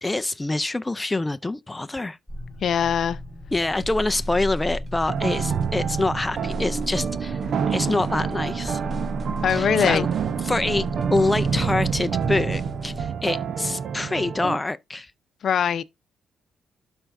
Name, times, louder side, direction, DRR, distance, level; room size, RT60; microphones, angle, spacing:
voice 1, 0.0-2.2 3.5-7.4 7.7-8.8 9.5-10.1 10.4-15.1, left 2 dB, 15° left, 0.5 m, -26 dB
sound 1, 2.3-13.1, left 1 dB, 5° right, 3.8 m, -36 dB
voice 2, 2.6-3.2 9.4-10.1 15.4-15.8, left 8 dB, 60° left, 0.6 m, -22 dB
sound 2, 3.5-13.1, right 2 dB, 40° right, 2.2 m, -46 dB
sound 3, 5.1-14.6, right 7 dB, 60° right, 0.7 m, -27 dB
12.0 x 4.4 x 2.6 m
cardioid pair, 90°, 0 cm